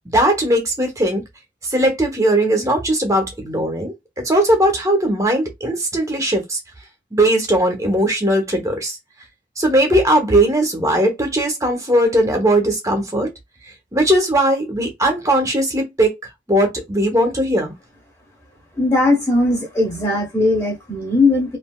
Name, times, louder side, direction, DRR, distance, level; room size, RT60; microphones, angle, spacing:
voice 1, 0.1-1.2 1.6-3.9 4.2-6.6 7.1-9.0 9.6-13.3 13.9-16.1 16.5-17.7, right 1 dB, 20° right, 1.0 m, -18 dB
voice 2, 18.8-21.6, left 2 dB, 10° left, 1.1 m, -18 dB
3.2 x 2.6 x 2.3 m
head